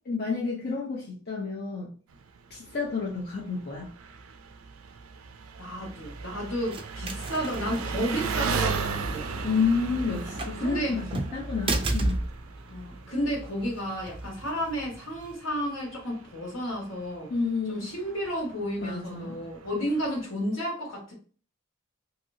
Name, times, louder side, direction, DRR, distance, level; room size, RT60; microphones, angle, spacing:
voice 1, 0.1-1.9 2.5-3.9 9.4-11.1 11.3-12.2 17.3-17.9 18.8-19.4, left 5 dB, 50° left, -4 dB, 0.8 m, -30 dB
Engine, 2.1-20.2, right 6 dB, 85° right, 0.4 m, -38 dB
voice 2, 5.6-9.3 10.6-11.0 12.7-17.3 17.7-21.1, equal, 80° left, -2 dB, 1.7 m, -32 dB
sound 1, 5.7-15.3, right 2 dB, 25° right, 0.4 m, -35 dB
3.0 x 2.8 x 2.7 m, 0.39 s
head